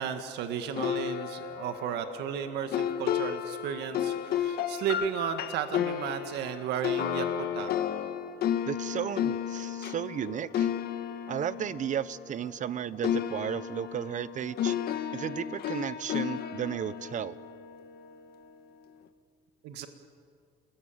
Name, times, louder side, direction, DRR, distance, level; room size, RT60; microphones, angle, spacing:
voice 1, 0.0-7.7 19.6-19.9, right 8 dB, 85° right, 7 dB, 1.8 m, -34 dB
sound 1, 0.8-12.7 13.0-18.3, left 9 dB, 65° left, 1.8 m, -33 dB
voice 2, 8.7-10.7 11.3-14.7 15.1-17.4, right 9 dB, 45° right, 16 dB, 1.0 m, -34 dB
29.0 x 21.5 x 9.1 m, 2.2 s
cardioid pair, 110°, 17 cm